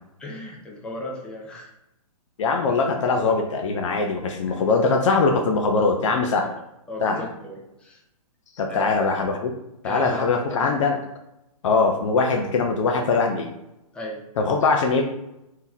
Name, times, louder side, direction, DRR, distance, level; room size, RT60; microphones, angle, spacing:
voice 1, 0.2-1.7 4.5-4.6 6.3-6.5 6.9-8.0 8.7-9.1 9.8-10.6 13.9-14.2, equal, 5° left, -2 dB, 0.5 m, -35 dB
voice 2, 2.4-6.5 7.0-7.3 8.6-9.5 9.8-11.0 11.6-13.5 14.4-15.0, left 4 dB, 55° left, 3 dB, 0.6 m, -21 dB
3.6 x 2.8 x 2.7 m, 0.87 s
hypercardioid pair, 140°, 19 cm